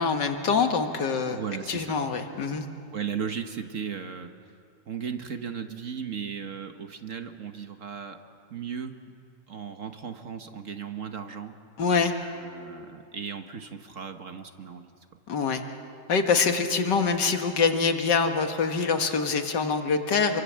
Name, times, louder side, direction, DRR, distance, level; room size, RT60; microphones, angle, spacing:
voice 1, 0.0-1.4 1.7-2.6 11.8-12.1 15.3-15.6 16.1-20.4, left 5 dB, 75° left, 5 dB, 2.2 m, -25 dB
voice 2, 1.3-2.0 2.9-4.3 4.9-8.2 8.5-9.0 9.5-11.6 12.2-14.9, right 7 dB, 50° right, 7 dB, 1.4 m, -36 dB
28.0 x 23.0 x 7.5 m, 2.5 s
omnidirectional pair, 1.9 m